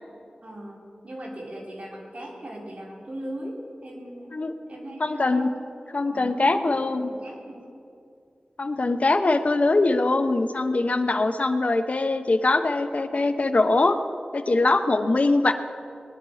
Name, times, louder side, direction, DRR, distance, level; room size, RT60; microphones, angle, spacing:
voice 1, 0.4-4.3 4.7-5.6 6.0-7.7, right 1 dB, 50° right, -2 dB, 3.3 m, -38 dB
voice 2, 5.0-5.5 5.9-7.1 8.6-14.0 14.3-15.5, left 2 dB, 55° left, 9 dB, 0.9 m, -22 dB
20.0 x 10.5 x 4.9 m, 2.4 s
wide cardioid pair, 65°, 3 cm